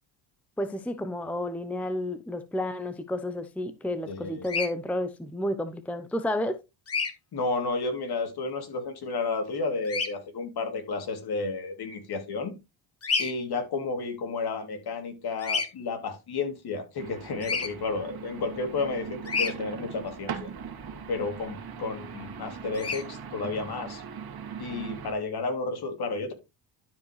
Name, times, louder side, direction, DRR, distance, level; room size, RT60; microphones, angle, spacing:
voice 1, 0.6-6.6, left 1 dB, 5° left, 0.6 m, -31 dB
voice 2, 4.1-4.5 7.3-12.5 13.2-20.5 21.1-24.0 24.6-26.3, left 3 dB, 50° left, 2.8 m, -32 dB
Bird vocalization bird call bird song, 4.4-4.7 6.9-7.1 9.9-10.1 13.0-13.3 15.4-15.7 17.4-17.7 19.3-19.5 22.7-23.0, left 5 dB, 30° left, 1.7 m, -28 dB
sound 1, 17.0-25.1, right 6 dB, 50° right, 2.0 m, -40 dB
12.0 x 5.3 x 3.2 m
cardioid pair, 105°, 48 cm